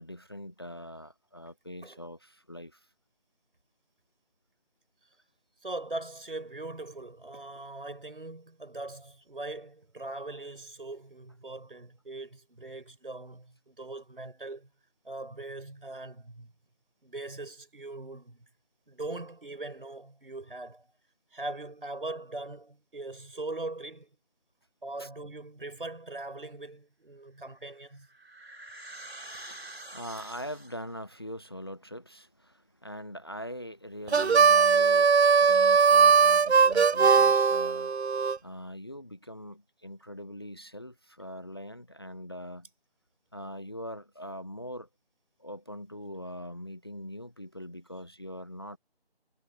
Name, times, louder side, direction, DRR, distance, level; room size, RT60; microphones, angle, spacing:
voice 1, 0.0-2.9 25.0-25.1 29.3-38.0 38.4-42.7 43.3-44.9 45.4-48.8, equal, 25° left, 1.0 m, -42 dB
voice 2, 5.6-14.7 15.0-16.5 17.0-18.4 18.9-20.9 21.3-24.1 24.8-28.1, right 2 dB, 55° right, 5.4 m, -40 dB
sound 1, 27.5-31.0, right 1 dB, 70° right, 3.2 m, -46 dB
Harmonica, 34.1-38.4, right 5 dB, 90° right, 0.6 m, -20 dB
figure-of-eight pair, 165°, 32 cm